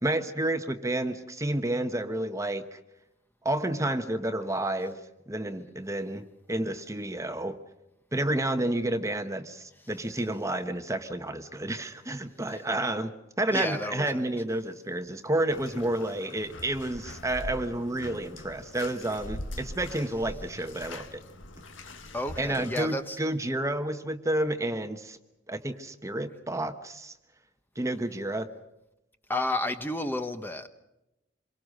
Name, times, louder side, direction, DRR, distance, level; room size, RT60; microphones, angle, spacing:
voice 1, 0.0-2.8 3.4-5.0 5.3-7.6 8.1-13.1 13.4-21.2 22.4-25.2 25.5-27.1 27.8-28.5, right 1 dB, 15° right, 1.1 m, -30 dB
voice 2, 13.5-14.1 22.1-23.2 29.3-30.7, left 1 dB, 10° left, 1.1 m, -31 dB
Bathtub (filling or washing), 15.5-22.8, left 1 dB, 80° left, 1.7 m, -42 dB
27.0 x 23.0 x 6.5 m
head